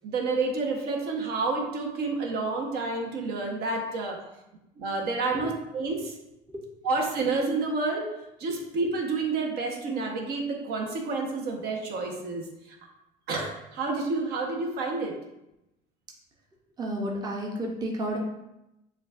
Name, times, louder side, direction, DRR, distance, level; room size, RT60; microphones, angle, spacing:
voice 1, 0.0-4.2 4.8-6.1 6.8-8.1 8.4-12.8 13.3-15.2, right 3 dB, 60° right, 1 dB, 0.9 m, -29 dB
voice 2, 16.8-18.2, right 1 dB, 20° right, 0 dB, 0.7 m, -31 dB
7.0 x 2.3 x 2.4 m, 0.90 s
supercardioid pair, 110°, 18 cm